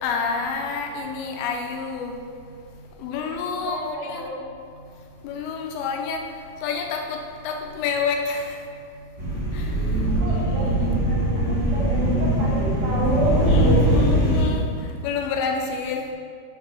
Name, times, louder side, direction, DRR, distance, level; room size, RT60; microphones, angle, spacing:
voice 1, 0.0-2.1 3.0-3.8 4.1-4.3 5.2-6.2 6.6-7.2 7.4-8.6 13.5-14.7 15.0-16.0, left 5 dB, 80° left, 2 dB, 2.5 m, -28 dB
voice 2, 3.5-4.5 10.1-14.0, right 1 dB, 65° right, -6 dB, 2.4 m, -30 dB
sound 1, 9.2-14.4, right 1 dB, 25° right, 1.3 m, -21 dB
7.8 x 4.0 x 6.1 m, 2.2 s
omnidirectional pair, 4.6 m